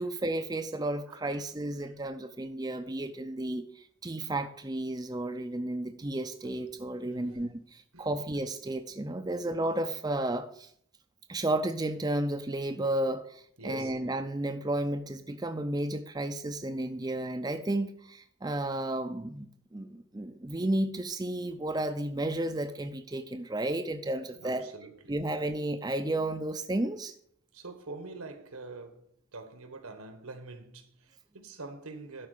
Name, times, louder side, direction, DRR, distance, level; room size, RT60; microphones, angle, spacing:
voice 1, 0.0-10.7 11.3-24.7 25.1-27.1, right 1 dB, 20° right, 0.5 m, -32 dB
voice 2, 1.1-1.4 1.7-2.0 7.0-7.5 7.9-8.2 9.3-9.5 13.6-14.0 24.3-25.2 27.5-32.3, right 3 dB, 85° right, 1.5 m, -46 dB
12.0 x 4.7 x 6.6 m
head